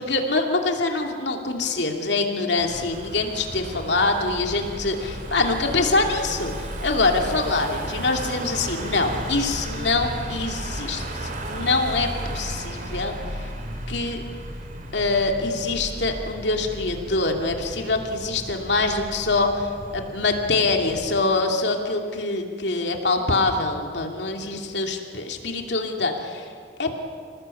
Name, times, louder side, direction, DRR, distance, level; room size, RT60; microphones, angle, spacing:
voice 1, 0.0-13.1 13.9-14.2 14.9-19.7 19.9-26.4 26.8-26.9, left 3 dB, 65° left, 3 dB, 2.7 m, -24 dB
Car passing by / Engine, 2.6-21.2, right 1 dB, 45° right, 3.0 m, -34 dB
26.5 x 18.5 x 8.5 m, 2.2 s
head